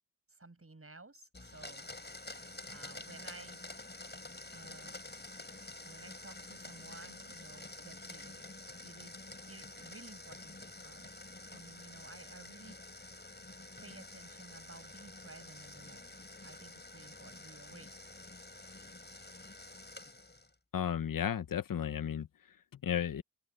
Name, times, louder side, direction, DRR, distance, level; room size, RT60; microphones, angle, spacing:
voice 1, 0.3-1.9 2.7-3.6 4.5-5.0 5.8-8.4 8.8-9.2 9.5-10.6 10.8-11.1 11.5-12.8 13.8-17.9, right 3 dB, 40° right, 7.6 m, -54 dB
Domestic sounds home sounds, 1.3-20.6, left 2 dB, 30° left, 5.1 m, -49 dB
voice 2, 20.7-22.3 22.8-23.2, left 9 dB, 80° left, 0.8 m, -33 dB
open air
cardioid pair, 40°, 33 cm